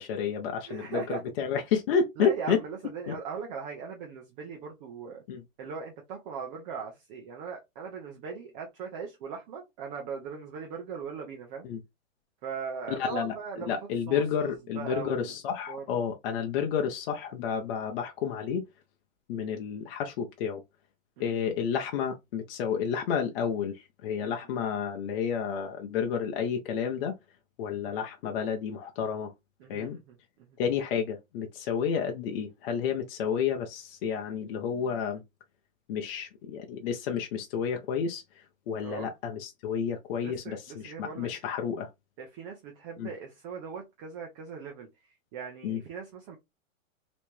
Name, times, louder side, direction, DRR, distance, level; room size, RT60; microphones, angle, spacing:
voice 1, 0.0-2.6 3.1-3.2 5.3-5.4 11.6-11.8 13.0-18.6 19.3-20.6 21.2-27.1 27.6-29.3 29.7-30.0 30.6-35.2 35.9-41.9 43.0-43.1 45.6-45.8, left 7 dB, 45° left, 0.7 m, -31 dB
voice 2, 0.7-1.2 2.2-5.2 5.6-11.6 12.4-13.7 14.1-15.3 15.7-15.8 21.2-21.4 24.2-24.4 27.7-28.0 29.6-30.6 38.8-39.1 40.2-41.3 42.2-44.9 45.3-46.4, right 6 dB, 35° right, 0.9 m, -39 dB
3.2 x 3.1 x 3.1 m
hypercardioid pair, 150°, 40 cm